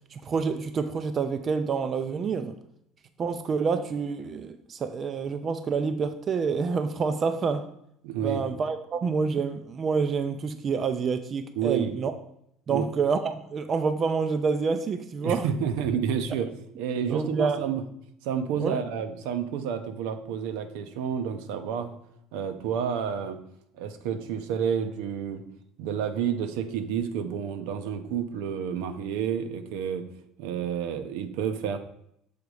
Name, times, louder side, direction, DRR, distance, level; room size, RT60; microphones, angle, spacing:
voice 1, 0.1-2.6 3.2-7.7 8.2-12.1 12.7-15.5 17.1-17.6 18.6-18.8, right 5 dB, 25° right, 10 dB, 0.3 m, -28 dB
voice 2, 8.0-8.4 11.6-11.9 12.7-12.9 15.2-16.5 16.8-17.8 18.2-22.0 22.3-23.4 23.7-25.4 25.8-30.0 30.4-31.8, right 8 dB, 80° right, 9 dB, 0.7 m, -30 dB
6.9 x 4.0 x 4.8 m, 0.73 s
cardioid pair, 180°, 0 cm